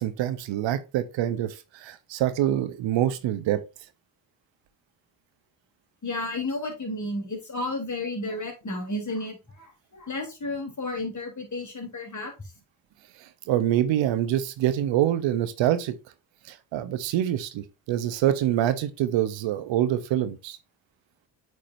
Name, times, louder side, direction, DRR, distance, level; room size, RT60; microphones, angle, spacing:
voice 1, 0.0-3.6 13.5-15.9 16.5-20.6, right 12 dB, 90° right, 0.8 m, -25 dB
voice 2, 6.0-12.3, left 2 dB, 40° left, 3.2 m, -32 dB
8.6 x 4.8 x 2.6 m
cardioid pair, 60°, 44 cm